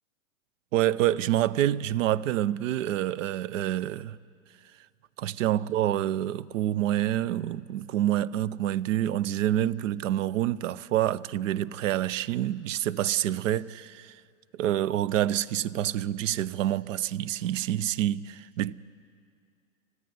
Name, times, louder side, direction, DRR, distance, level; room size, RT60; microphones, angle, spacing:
voice 1, 0.7-4.2 5.2-14.1 14.6-18.7, right 12 dB, 65° right, 0.6 m, -27 dB
29.0 x 9.6 x 9.3 m
hypercardioid pair, 130°, 42 cm